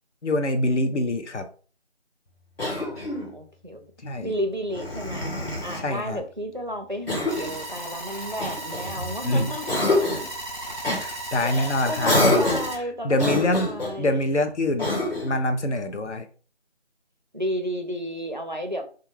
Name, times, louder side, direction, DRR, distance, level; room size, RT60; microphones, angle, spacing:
voice 1, 0.2-1.4 4.0-4.3 5.8-6.2 9.2-9.5 10.9-12.4 13.0-13.7 14.0-14.9 15.2-16.3, left 1 dB, 75° left, 7 dB, 0.7 m, -25 dB
Cough, 2.6-3.3 4.7-5.9 7.1-7.6 8.4-9.2 9.7-10.3 10.8-11.0 12.0-12.8 13.2-14.0 14.8-15.4, left 2 dB, 60° left, 1.1 m, -26 dB
voice 2, 2.8-3.8 4.2-5.3 5.6-10.1 11.4-14.3 17.3-18.8, equal, 45° right, 4 dB, 0.4 m, -32 dB
sound 1, 7.3-12.8, right 1 dB, 40° left, 0.5 m, -35 dB
2.4 x 2.4 x 3.1 m, 0.39 s
figure-of-eight pair, 175°, 35 cm